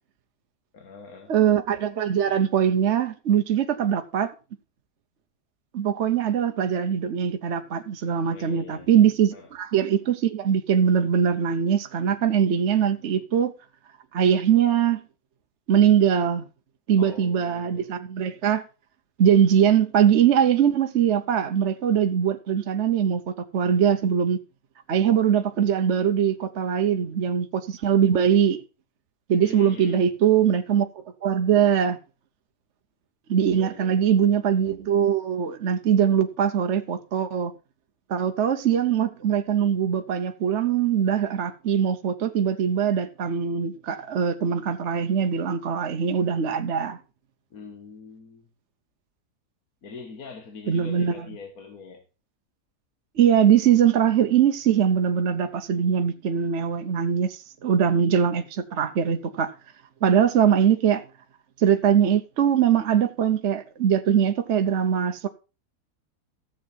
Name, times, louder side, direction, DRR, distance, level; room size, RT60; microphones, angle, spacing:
voice 1, 0.7-1.3 8.3-8.9 9.3-9.5 17.0-17.9 29.4-30.1 33.5-34.1 47.5-48.5 49.8-52.0, left 4 dB, 70° left, 1.9 m, -43 dB
voice 2, 1.3-4.3 5.7-13.5 14.1-15.0 15.7-16.4 16.9-18.6 19.2-24.4 24.9-28.6 29.3-32.0 33.3-37.5 38.1-47.0 50.7-51.3 53.2-59.5 60.0-61.0 61.6-65.3, right 8 dB, 55° right, 1.0 m, -22 dB
14.0 x 7.4 x 4.3 m
omnidirectional pair, 1.6 m